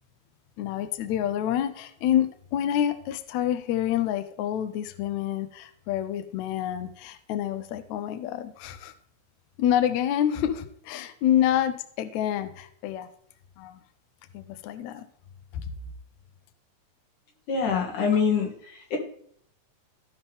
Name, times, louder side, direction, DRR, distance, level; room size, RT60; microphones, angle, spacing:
voice 1, 0.6-8.9 9.6-13.1 13.6-13.8 14.3-15.1 15.5-15.6, left 10 dB, 80° left, 10 dB, 1.6 m, -27 dB
voice 2, 17.5-19.0, left 6 dB, 60° left, 0 dB, 3.3 m, -25 dB
15.5 x 5.7 x 3.5 m, 0.63 s
omnidirectional pair, 4.1 m